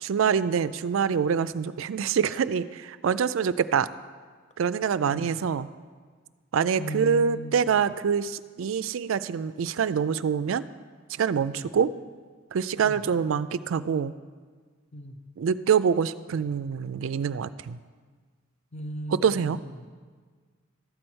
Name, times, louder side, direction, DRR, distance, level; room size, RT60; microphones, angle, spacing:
voice 1, 0.0-3.9 4.6-5.7 6.5-10.6 11.2-11.9 12.5-14.1 15.4-17.8 19.1-19.6, right 7 dB, 65° right, 15 dB, 0.4 m, -25 dB
voice 2, 5.0-5.3 6.8-7.7 11.5-11.7 12.8-13.0 14.9-15.2 18.7-19.6, equal, 30° left, 4 dB, 0.8 m, -37 dB
12.5 x 4.4 x 7.9 m, 1.6 s
head